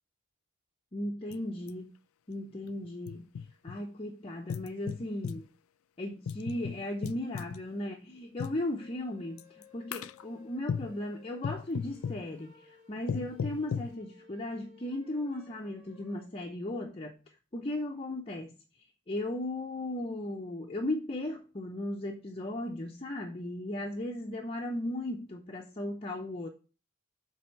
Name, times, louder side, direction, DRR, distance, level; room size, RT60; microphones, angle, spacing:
voice 1, 0.9-1.9 2.3-3.2 3.6-5.5 6.0-17.2 17.5-18.5 19.1-26.5, left 1 dB, 25° left, 0.6 m, -36 dB
sound 1, 1.3-1.4 1.7-1.8 2.6-3.8 4.5-5.5 6.3-7.6 8.4-8.6 9.4-9.6 9.9-10.2 10.7-11.0 11.4-12.3 13.1-14.0, left 6 dB, 80° left, 0.4 m, -36 dB
sound 2, 8.8-16.3, left 5 dB, 15° right, 3.2 m, -59 dB
7.7 x 3.4 x 5.7 m
head